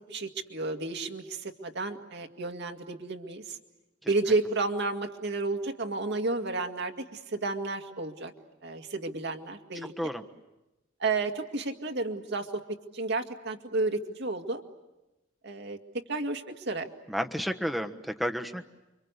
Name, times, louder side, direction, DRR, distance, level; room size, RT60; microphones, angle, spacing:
voice 1, 0.0-3.6 4.1-8.3 8.6-9.9 11.0-14.6 15.4-15.8 16.1-16.9, right 3 dB, 60° right, 6 dB, 2.1 m, -32 dB
voice 2, 17.1-18.6, equal, ahead, 5 dB, 1.3 m, -31 dB
29.0 x 25.0 x 8.3 m, 1.0 s
head